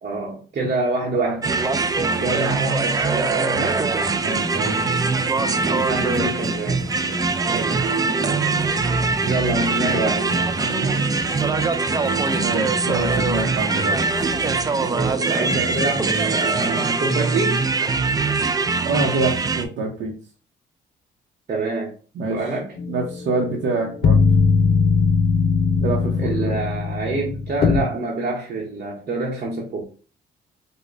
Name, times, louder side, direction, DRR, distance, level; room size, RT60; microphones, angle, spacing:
voice 1, 0.0-1.4 2.2-3.9 5.6-6.8 7.5-8.5 9.2-10.2 14.9-17.6 21.5-21.9 22.3-22.7 26.2-29.8, right 2 dB, 45° right, 0.9 m, -26 dB
voice 2, 1.2-1.6 2.0-2.4 4.2-4.8 7.5-7.8 9.9-11.1 12.3-14.0 18.8-20.2 22.2-22.4 22.9-24.2 25.8-26.6, right 3 dB, 75° right, 0.7 m, -27 dB
sound 1, 1.4-19.6, right 4 dB, 20° right, 0.3 m, -22 dB
sound 2, 4.1-17.2, right 1 dB, 20° left, 1.5 m, -32 dB
sound 3, 22.8-27.8, left 5 dB, 50° left, 0.6 m, -20 dB
5.1 x 2.2 x 2.5 m
cardioid pair, 90°, 20 cm